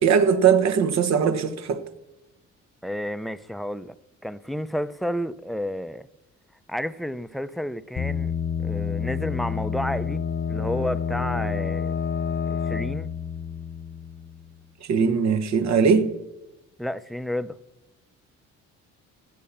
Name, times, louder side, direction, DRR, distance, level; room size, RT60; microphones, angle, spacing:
voice 1, 0.0-1.8 14.9-16.1, right 6 dB, 65° right, 1.3 m, -20 dB
voice 2, 2.8-4.0 4.2-6.1 6.7-8.3 8.6-10.2 10.5-11.9 12.5-13.1 16.8-17.6, equal, ahead, 0.5 m, -31 dB
sound 1, 8.0-14.6, left 6 dB, 35° left, 0.9 m, -29 dB
14.0 x 8.4 x 7.1 m
cardioid pair, 90°, 30 cm